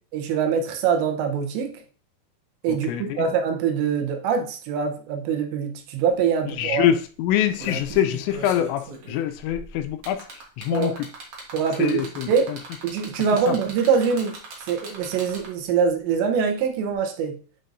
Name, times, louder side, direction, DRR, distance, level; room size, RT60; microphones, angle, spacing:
voice 1, 0.1-1.8 2.6-6.9 10.7-11.0 11.5-12.5 12.8-14.4 14.7-17.4, right 6 dB, 80° right, 5 dB, 3.1 m, -24 dB
voice 2, 2.7-3.2 6.6-10.2 10.6-10.9 11.8-12.6 13.5-13.6, left 11 dB, 90° left, 8 dB, 2.9 m, -24 dB
sound 1, 6.1-6.2 6.5-6.7 7.3-15.7 16.9-17.0, right 3 dB, 65° right, 1.5 m, -39 dB
9.3 x 4.4 x 2.6 m, 0.40 s
omnidirectional pair, 5.1 m